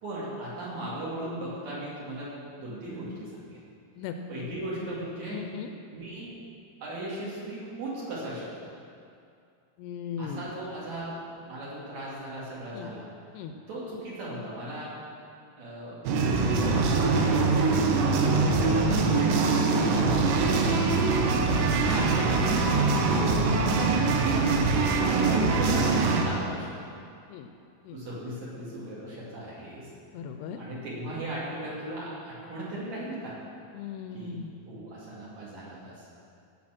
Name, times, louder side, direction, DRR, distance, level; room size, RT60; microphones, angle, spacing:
voice 1, 0.0-3.6 4.3-5.4 5.9-6.3 6.8-8.7 10.2-11.2 11.5-13.1 13.7-14.9 15.6-16.0 16.4-17.2 17.8-20.7 21.7-24.4 25.0-26.9 27.9-29.9 30.6-33.4 34.1-34.4 34.7-36.1, right 1 dB, 45° right, -7 dB, 3.4 m, -37 dB
voice 2, 4.0-4.5 5.3-5.7 9.8-10.4 12.7-12.9 13.3-13.5 20.0-20.1 27.3-27.5 27.9-28.0 30.1-30.6 33.8-34.5, left 7 dB, 80° left, 6 dB, 2.6 m, -38 dB
sound 1, 16.1-26.2, right 3 dB, 85° right, 3.2 m, -23 dB
16.5 x 5.9 x 6.0 m, 2.4 s
omnidirectional pair, 4.9 m